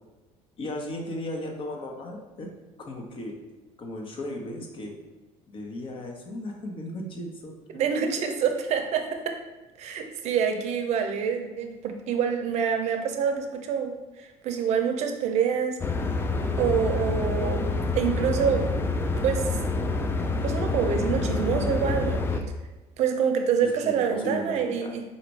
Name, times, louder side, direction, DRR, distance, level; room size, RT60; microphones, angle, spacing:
voice 1, 0.6-2.5 2.8-3.3 3.8-4.9 5.5-7.5 8.2-8.3 23.6-24.6 24.8-24.9, left 1 dB, 40° left, 1 dB, 0.9 m, -36 dB
voice 2, 7.7-9.4 9.8-15.8 16.6-17.6 18.0-18.7 19.2-19.6 20.4-22.5 23.0-25.0, right 7 dB, 55° right, 5 dB, 0.6 m, -26 dB
sound 1, 15.8-22.4, left 3 dB, 15° left, 0.4 m, -27 dB
4.1 x 2.5 x 4.6 m, 1.2 s
supercardioid pair, 100°, 14 cm